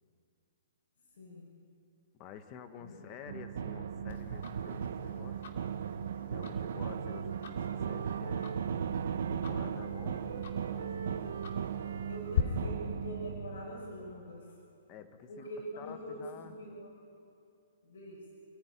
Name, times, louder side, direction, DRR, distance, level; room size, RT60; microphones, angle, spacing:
voice 1, 1.2-1.5 2.8-3.0 7.1-7.2 12.1-14.5 15.3-16.9 17.8-18.2, equal, 70° left, -5 dB, 6.5 m, -44 dB
voice 2, 2.1-5.6 6.3-8.5 9.3-11.5 14.9-15.5 15.8-16.5, left 8 dB, 20° left, 8 dB, 1.3 m, -50 dB
sound 1, 3.3-14.2, right 7 dB, 60° right, 1.0 m, -37 dB
Tick-tock, 4.1-12.4, left 8 dB, 50° left, 2.6 m, -42 dB
Wind instrument woodwind instrument, 5.9-9.4 9.8-13.8, right 5 dB, 90° right, 1.6 m, -48 dB
29.0 x 15.0 x 9.5 m, 2.5 s
hypercardioid pair, 175°, 0 cm